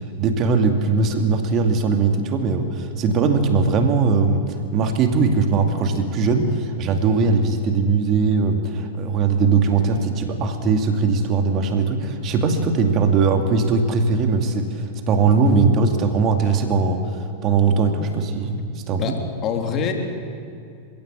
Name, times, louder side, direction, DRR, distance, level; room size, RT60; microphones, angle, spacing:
voice 1, 0.2-17.0 17.4-19.2, right 4 dB, 35° right, 5 dB, 2.3 m, -20 dB
voice 2, 19.0-19.9, left 7 dB, 30° left, 3 dB, 3.5 m, -25 dB
29.0 x 16.5 x 8.4 m, 2.5 s
figure-of-eight pair, 90°, 0 cm